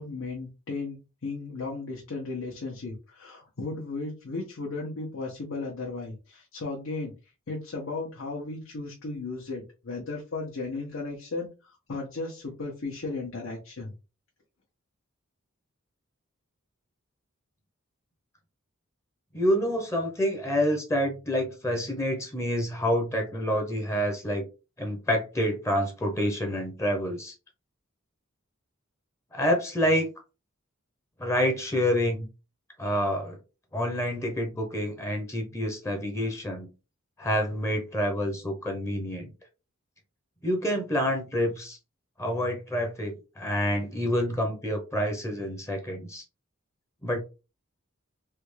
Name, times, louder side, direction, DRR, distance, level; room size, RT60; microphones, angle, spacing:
voice 1, 0.0-7.1 7.5-13.9, left 3 dB, 75° left, 0.8 m, -35 dB
voice 2, 19.3-24.5 24.8-27.3 29.3-30.1 31.2-32.3 32.8-33.4 33.7-36.7 37.2-39.3 40.4-41.8 42.2-46.2 47.0-47.2, equal, 15° left, 0.6 m, -27 dB
3.4 x 2.3 x 3.1 m
head